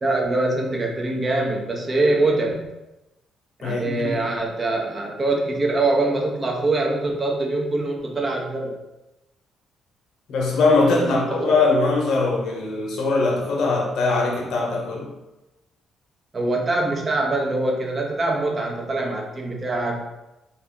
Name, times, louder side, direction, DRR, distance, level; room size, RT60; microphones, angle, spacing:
voice 1, 0.0-2.6 3.6-8.8 11.0-11.5 16.3-20.1, right 2 dB, 30° right, 0 dB, 0.7 m, -23 dB
voice 2, 3.6-4.2 10.3-15.1, left 3 dB, 75° left, -2 dB, 0.8 m, -21 dB
2.8 x 2.5 x 3.5 m, 0.98 s
cardioid pair, 90°, 0 cm